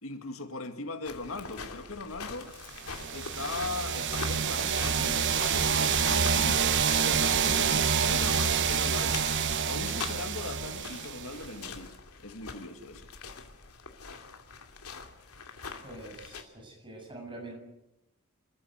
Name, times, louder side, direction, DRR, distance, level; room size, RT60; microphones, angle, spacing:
voice 1, 0.0-2.5 3.1-9.3 9.6-11.9 12.2-13.1, left 3 dB, 65° left, 7 dB, 2.1 m, -39 dB
sound 1, 1.0-16.4, left 5 dB, 90° left, 2.5 m, -44 dB
sound 2, 2.8-11.5, right 6 dB, 55° right, 1.1 m, -27 dB
voice 2, 15.8-17.5, right 2 dB, 20° right, 2 dB, 7.3 m, -45 dB
26.0 x 14.5 x 9.4 m, 0.93 s
head